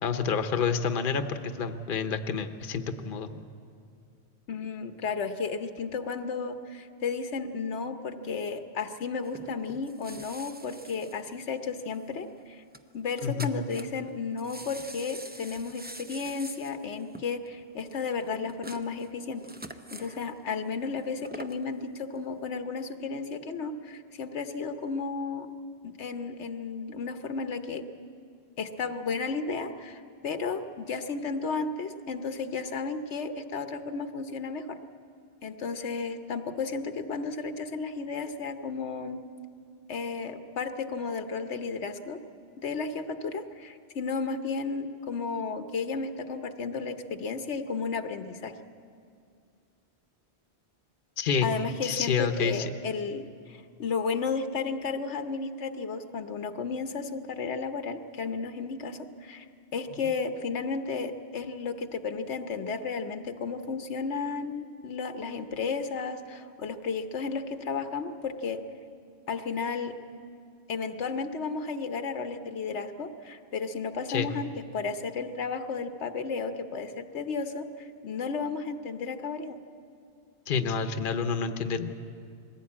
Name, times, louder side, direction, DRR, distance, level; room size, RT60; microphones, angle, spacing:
voice 1, 0.0-3.4 13.2-13.5 51.2-51.5 51.8-52.7 74.1-74.3 80.5-81.9, left 6 dB, 55° left, 9 dB, 1.0 m, -28 dB
voice 2, 4.5-12.6 12.9-19.4 19.9-25.5 25.8-27.8 28.6-34.8 35.4-39.2 39.9-42.2 42.6-48.6 51.4-59.4 59.7-68.6 69.3-70.0 70.7-79.6, left 4 dB, 85° left, 8 dB, 1.2 m, -33 dB
sound 1, 9.2-12.0 12.3-12.4 12.7-12.8 13.1-14.1 14.4-20.2 21.0-21.7 22.2-22.3, right 1 dB, 10° right, 0.5 m, -45 dB
21.0 x 16.0 x 8.6 m, 2.4 s
omnidirectional pair, 1.1 m